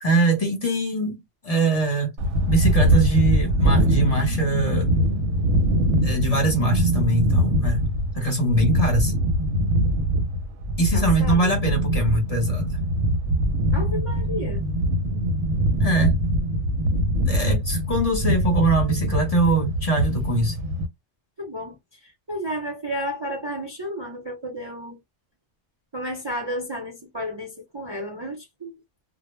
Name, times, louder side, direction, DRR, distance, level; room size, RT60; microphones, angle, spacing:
voice 1, 0.0-2.1 2.5-4.9 6.0-7.8 8.1-9.1 10.8-12.8 15.8-16.2 17.2-20.6, right 2 dB, 35° left, 0.8 m, -23 dB
sound 1, 2.2-20.9, equal, 85° right, 0.9 m, -22 dB
voice 2, 10.9-11.6 13.7-14.7 21.4-25.0 25.9-28.7, equal, 30° right, 0.5 m, -32 dB
2.1 x 2.1 x 3.0 m
omnidirectional pair, 1.2 m